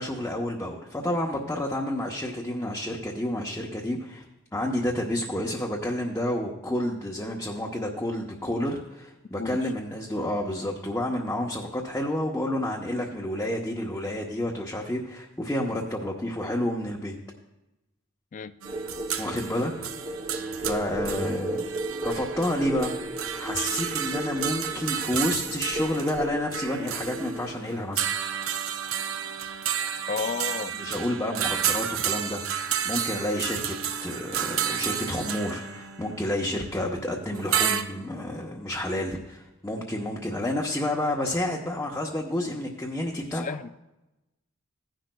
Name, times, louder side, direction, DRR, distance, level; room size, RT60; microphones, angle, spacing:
voice 1, 0.0-4.2 4.5-17.1 19.2-19.9 20.6-21.7 22.0-23.0 23.3-28.1 30.7-32.4 32.8-33.8 34.0-43.4, left 1 dB, 10° left, 0.8 m, -30 dB
sound 1, 18.6-37.8, right 9 dB, 70° right, 0.6 m, -31 dB
sound 2, 18.7-27.6, right 1 dB, 25° right, 0.7 m, -35 dB
voice 2, 30.1-30.8 36.5-36.7 43.3-43.7, left 5 dB, 35° left, 0.3 m, -32 dB
15.5 x 10.5 x 2.2 m
head